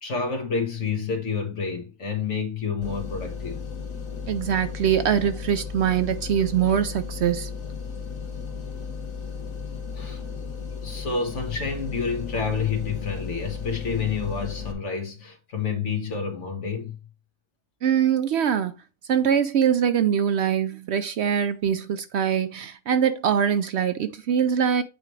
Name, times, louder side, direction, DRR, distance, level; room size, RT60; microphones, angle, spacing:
voice 1, 0.0-3.6 10.0-10.5 10.8-17.0, left 5 dB, 65° left, 1.7 m, -29 dB
sound 1, 2.8-14.7, left 6 dB, 85° left, 1.6 m, -35 dB
voice 2, 4.3-7.5 17.8-18.7 19.1-24.8, right 8 dB, 65° right, 0.7 m, -23 dB
8.2 x 4.8 x 3.2 m
omnidirectional pair, 1.4 m